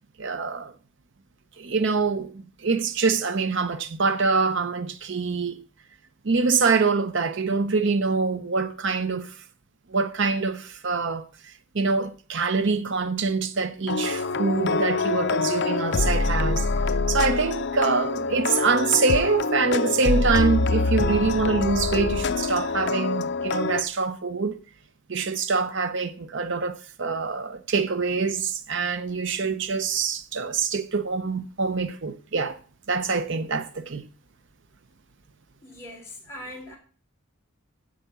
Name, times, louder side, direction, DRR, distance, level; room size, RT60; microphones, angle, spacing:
voice 1, 0.2-0.7 1.6-5.6 6.2-9.4 9.9-16.7 17.1-24.6 25.1-32.6 32.9-34.1, right 4 dB, 55° right, 0.7 m, -25 dB
sound 1, 13.9-23.8, left 3 dB, 50° left, 0.6 m, -25 dB
voice 2, 35.6-36.8, left 1 dB, 10° left, 3.2 m, -41 dB
10.0 x 4.9 x 8.1 m
head